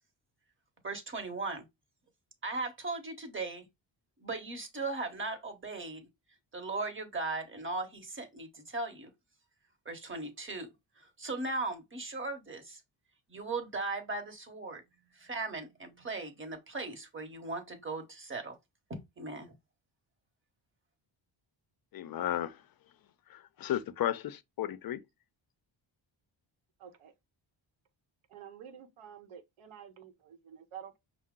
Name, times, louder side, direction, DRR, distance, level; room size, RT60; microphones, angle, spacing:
voice 1, 0.8-1.6 2.4-3.7 4.2-6.1 6.5-9.1 9.8-10.7 11.0-12.8 13.3-14.8 15.1-18.6 18.9-19.5, right 3 dB, 25° right, 1.0 m, -38 dB
voice 2, 21.9-22.5 23.6-25.0, left 12 dB, 50° left, 0.5 m, -33 dB
voice 3, 26.8-27.1 28.3-31.0, right 8 dB, 90° right, 0.8 m, -49 dB
5.5 x 2.0 x 3.6 m
wide cardioid pair, 140°, 47 cm